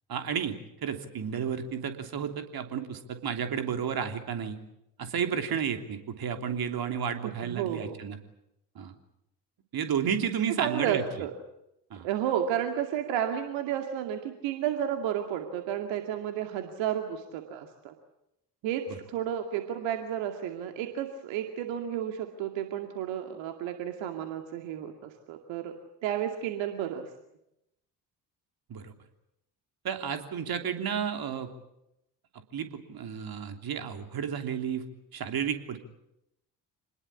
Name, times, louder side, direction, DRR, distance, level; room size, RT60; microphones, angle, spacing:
voice 1, 0.1-4.6 5.0-8.2 8.7-8.9 9.7-11.0 11.9-12.1 18.9-19.0 28.7-28.9 29.8-31.5 32.5-34.9 35.1-35.8, right 7 dB, 45° right, 7 dB, 3.2 m, -32 dB
voice 2, 7.2-8.0 10.6-11.3 12.0-17.9 18.6-25.7 26.0-27.1, right 10 dB, 65° right, 5 dB, 2.4 m, -32 dB
26.5 x 20.5 x 8.6 m, 0.84 s
figure-of-eight pair, 50°, 49 cm